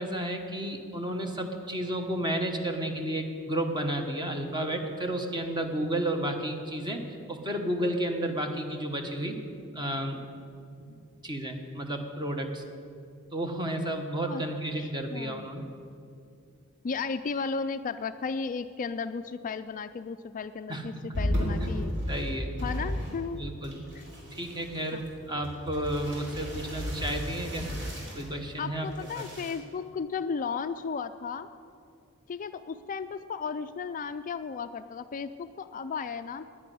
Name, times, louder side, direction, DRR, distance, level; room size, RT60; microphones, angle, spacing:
voice 1, 0.0-9.4 9.7-10.2 10.9-11.0 11.2-12.6 13.3-15.7 20.7-20.9 22.1-22.5 23.3-23.9 24.3-27.7 28.1-28.9 29.1-29.2, right 1 dB, 20° right, 5 dB, 1.3 m, -32 dB
voice 2, 14.7-15.5 16.8-22.0 22.6-23.4 23.9-24.1 24.9-25.0 28.6-31.5 32.3-36.4, left 5 dB, 35° left, 10 dB, 0.4 m, -35 dB
sound 1, 21.1-23.4 23.6-28.3 28.9-29.5, equal, 55° right, 3.4 m, -34 dB
10.5 x 10.0 x 9.3 m, 2.4 s
head